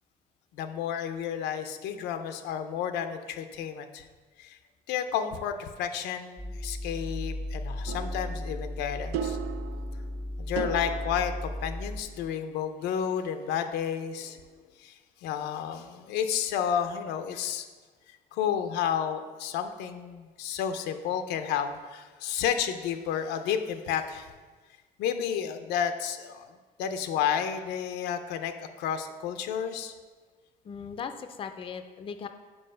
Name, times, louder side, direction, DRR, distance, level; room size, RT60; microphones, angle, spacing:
voice 1, 0.5-4.1 4.4-4.6 4.9-9.4 10.4-14.5 14.8-15.0 15.2-17.7 18.3-24.3 25.0-26.5 26.8-29.9, left 8 dB, 85° left, 8 dB, 0.5 m, -31 dB
sound 1, 6.4-12.0, left 1 dB, 15° right, 0.7 m, -35 dB
sound 2, 7.9-12.4, right 9 dB, 85° right, 0.4 m, -38 dB
voice 2, 30.6-32.3, left 6 dB, 30° left, 8 dB, 0.4 m, -38 dB
5.4 x 4.6 x 5.6 m, 1.4 s
cardioid pair, 110°, 17 cm